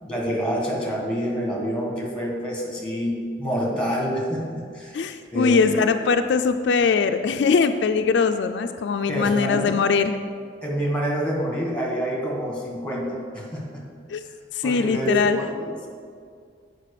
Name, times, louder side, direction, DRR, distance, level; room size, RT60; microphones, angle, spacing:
voice 1, 0.0-5.0 5.3-5.8 9.1-9.6 10.6-13.8 14.6-15.9, equal, 5° left, -2 dB, 1.7 m, -27 dB
voice 2, 4.9-10.1 14.1-14.2 14.5-15.4, left 5 dB, 70° left, 8 dB, 0.3 m, -21 dB
7.6 x 5.2 x 6.5 m, 2.2 s
head